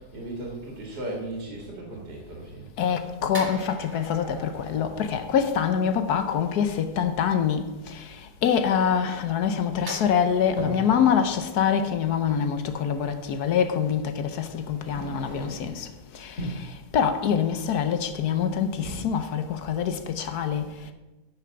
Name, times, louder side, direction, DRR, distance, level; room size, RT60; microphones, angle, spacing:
voice 1, 0.0-2.7, right 1 dB, 80° right, 2.3 m, -36 dB
voice 2, 2.8-15.9 16.1-20.7, left 7 dB, 70° left, 1.3 m, -25 dB
sound 1, 3.3-6.0 9.9-13.1 13.4-13.6, right 2 dB, 15° right, 1.0 m, -43 dB
sound 2, 9.9-11.0 12.6-12.7 13.9-14.1 14.6-15.9 16.2-16.7 18.1-18.4 18.7-19.0, right 1 dB, 50° left, 3.3 m, -37 dB
9.3 x 5.9 x 6.9 m
omnidirectional pair, 1.8 m